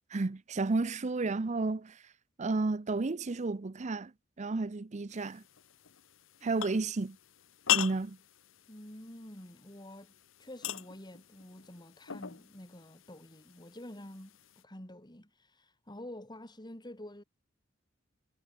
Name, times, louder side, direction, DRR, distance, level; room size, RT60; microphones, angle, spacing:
voice 1, 0.1-2.0 2.4-4.1 4.4-5.4 6.4-7.2 7.7-8.2, right 3 dB, 35° right, 0.6 m, -32 dB
sound 1, 5.1-14.6, left 11 dB, 90° left, 1.0 m, -40 dB
voice 2, 8.7-10.1 10.4-17.2, left 1 dB, 20° left, 4.1 m, -48 dB
head